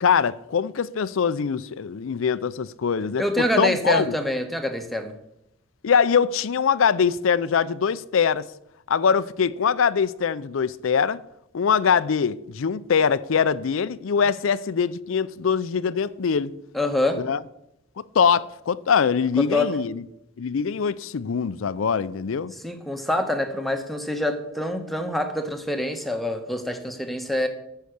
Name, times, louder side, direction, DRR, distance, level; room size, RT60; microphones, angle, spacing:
voice 1, 0.0-4.1 5.8-8.5 8.9-11.2 11.5-16.5 17.2-17.4 18.1-20.0 20.4-22.5, left 6 dB, 75° left, 0.5 m, -23 dB
voice 2, 3.2-5.1 16.7-17.2 19.4-19.7 22.5-27.5, left 1 dB, ahead, 1.0 m, -26 dB
13.5 x 5.7 x 6.5 m
head